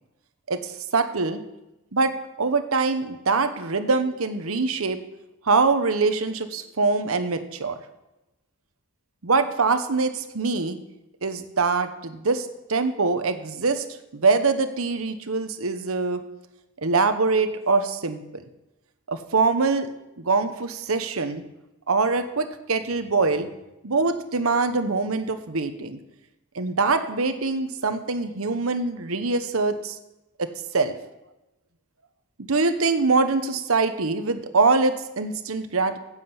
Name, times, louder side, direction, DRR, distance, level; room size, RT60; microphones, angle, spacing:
voice 1, 0.5-1.4 1.9-2.1 2.4-5.0 5.4-7.8 9.2-10.8 11.2-13.8 14.1-16.2 16.8-18.4 19.1-19.9 20.2-21.4 21.9-23.5 23.8-26.0 26.5-30.0 30.4-30.9 32.4-35.9, right 4 dB, 80° right, 9 dB, 1.1 m, -23 dB
9.7 x 7.6 x 8.0 m, 0.97 s
head